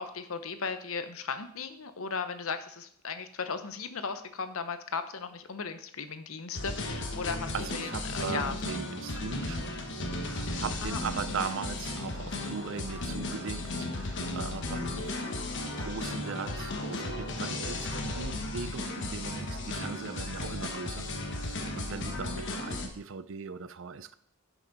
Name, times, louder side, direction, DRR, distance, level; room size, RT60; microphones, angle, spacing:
voice 1, 0.0-8.5 10.8-11.0 22.4-22.6, left 5 dB, 70° left, 10 dB, 0.8 m, -36 dB
sound 1, 6.5-22.9, left 2 dB, 55° left, 1.3 m, -35 dB
voice 2, 7.5-9.8 10.1-15.3 15.8-24.1, right 5 dB, 60° right, 14 dB, 0.5 m, -39 dB
11.5 x 5.9 x 4.0 m, 0.65 s
head